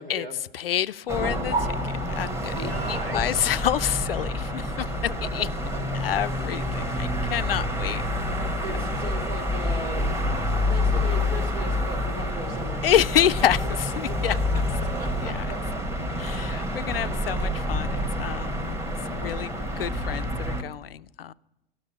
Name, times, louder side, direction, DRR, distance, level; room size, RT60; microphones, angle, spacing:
voice 1, 0.0-0.3 2.5-3.4 5.4-6.2 8.6-10.0 10.7-12.8 14.1-14.6 15.0-15.6, right 1 dB, 80° right, 6 dB, 1.9 m, -38 dB
voice 2, 0.5-5.5 5.9-8.0 12.8-14.3 15.2-15.5 16.2-21.3, left 10 dB, 70° left, 17 dB, 0.4 m, -28 dB
sound 1, 1.1-20.6, left 1 dB, 10° right, 1.0 m, -28 dB
12.5 x 6.4 x 8.4 m, 0.98 s
figure-of-eight pair, 95°, 30 cm